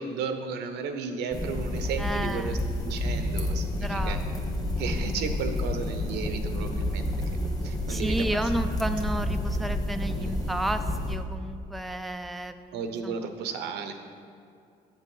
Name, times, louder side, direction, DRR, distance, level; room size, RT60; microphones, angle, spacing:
voice 1, 0.0-4.2 4.8-7.0 7.6-8.4 10.1-10.5 12.7-13.9, right 5 dB, 85° right, 7 dB, 0.9 m, -34 dB
sound 1, 1.3-11.2, left 1 dB, 20° left, 1.4 m, -30 dB
voice 2, 2.0-2.6 3.7-4.4 7.9-13.3, right 1 dB, ahead, 8 dB, 0.4 m, -32 dB
7.7 x 7.3 x 5.5 m, 2.4 s
cardioid pair, 110°, 17 cm